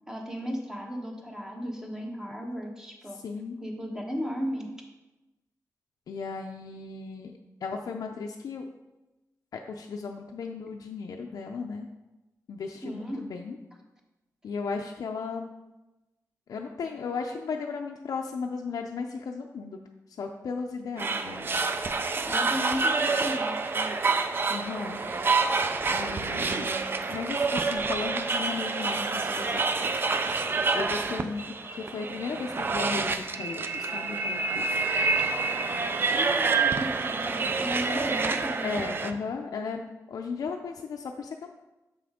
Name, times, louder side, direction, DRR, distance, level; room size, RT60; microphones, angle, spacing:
voice 1, 0.1-3.2 3.6-4.7 12.8-13.3 22.2-24.0 36.1-38.8, equal, 10° right, 1 dB, 1.0 m, -35 dB
voice 2, 3.1-3.6 6.1-7.3 7.6-8.6 9.5-11.9 12.5-13.6 14.4-15.5 16.5-19.8 20.2-21.5 24.5-25.0 25.9-29.9 30.7-34.7 38.6-41.5, left 5 dB, 75° left, 2 dB, 0.4 m, -35 dB
sound 1, 21.0-39.1, right 4 dB, 35° right, 0.4 m, -28 dB
7.1 x 5.9 x 3.6 m, 1.0 s
wide cardioid pair, 160°, 6 cm